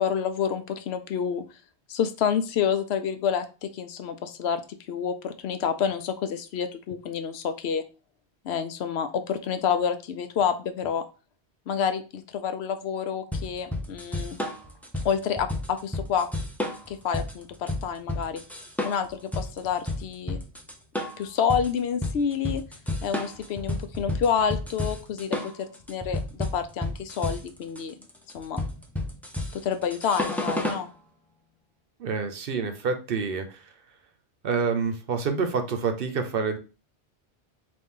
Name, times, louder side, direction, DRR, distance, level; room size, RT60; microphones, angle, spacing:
voice 1, 0.0-1.4 1.9-4.6 4.9-7.8 8.4-11.0 11.7-14.4 15.0-16.3 16.9-18.4 18.8-20.4 21.2-22.6 23.0-27.9 28.3-28.6 29.5-30.9, left 7 dB, 75° left, 8 dB, 0.8 m, -28 dB
sound 1, 13.3-30.9, left 1 dB, ahead, 0.4 m, -31 dB
voice 2, 32.0-33.7 34.4-36.6, right 5 dB, 65° right, 7 dB, 0.8 m, -27 dB
4.1 x 2.6 x 3.6 m, 0.33 s
omnidirectional pair, 1.1 m